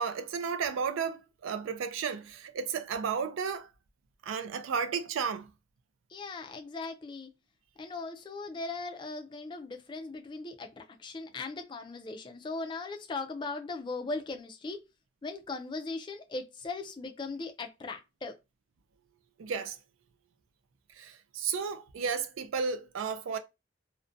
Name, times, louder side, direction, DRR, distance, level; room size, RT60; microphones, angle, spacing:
voice 1, 0.0-3.7 4.2-5.5 19.4-19.8 20.9-23.4, right 6 dB, 80° right, 0.4 m, -33 dB
voice 2, 6.1-7.3 7.8-14.8 15.2-18.4, left 3 dB, 25° left, 0.3 m, -39 dB
2.4 x 2.1 x 2.5 m
head